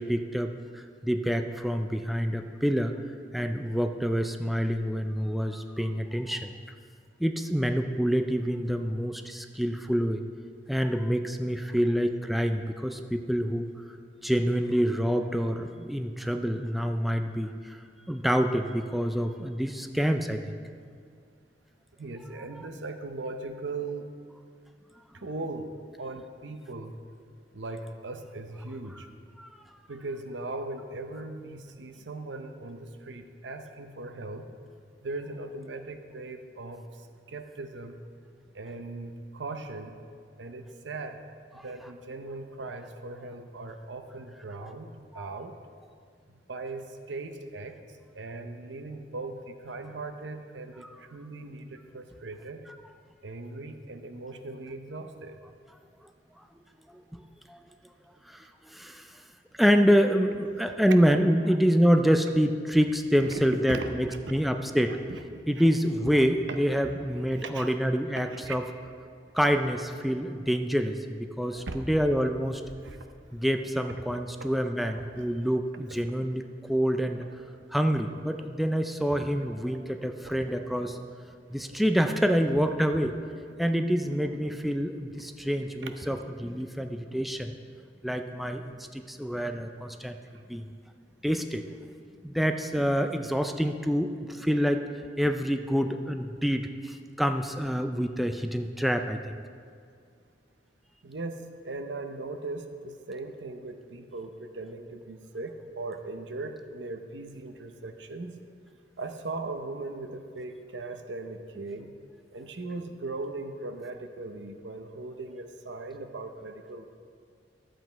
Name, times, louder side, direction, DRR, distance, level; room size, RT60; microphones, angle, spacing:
voice 1, 0.0-2.9 3.3-6.5 7.2-10.2 10.7-13.7 14.2-17.8 18.1-20.6 29.4-29.5 41.6-41.7 44.6-44.7 45.1-45.4 52.7-52.8 57.1-57.2 57.5-57.6 58.3-59.1 59.6-65.0 65.5-68.6 69.3-72.6 73.3-77.2 77.7-81.0 81.5-83.1 83.6-87.6 88.0-90.2 90.5-90.7 91.2-91.6 92.2-94.8 95.2-99.4, equal, ahead, 6 dB, 0.4 m, -27 dB
voice 2, 22.0-24.1 25.1-25.7 26.0-27.0 27.5-29.1 29.9-34.5 35.0-37.0 37.3-38.0 38.5-40.0 40.4-41.2 41.5-45.6 46.3-47.8 48.1-52.6 53.2-55.4 60.6-60.7 61.4-61.6 63.2-64.5 65.1-65.6 66.5-66.6 66.9-67.0 67.3-67.7 68.3-68.6 71.3-71.4 71.7-71.8 72.8-73.0 74.9-75.3 75.9-76.0 79.1-79.2 80.2-80.5 81.6-81.8 85.2-85.5 85.8-85.9 90.3-90.4 101.0-108.3 109.0-111.9 112.3-117.0, right 2 dB, 80° right, 7 dB, 0.8 m, -39 dB
12.0 x 7.8 x 4.5 m, 2.2 s
head